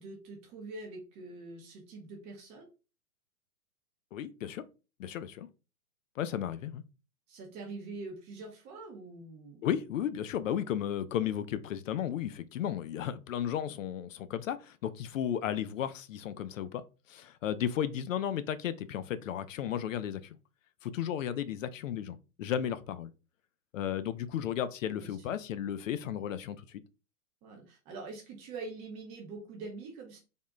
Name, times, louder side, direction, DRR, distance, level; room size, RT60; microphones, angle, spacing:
voice 1, 0.0-2.7 7.3-9.6 24.8-25.3 27.4-30.2, right 3 dB, 15° right, 0.4 m, -44 dB
voice 2, 4.1-4.6 5.0-5.5 6.2-6.8 9.6-16.8 17.1-20.4 20.8-23.1 23.7-26.8, left 10 dB, 60° left, 0.5 m, -34 dB
3.5 x 2.1 x 3.6 m
hypercardioid pair, 125°, 44 cm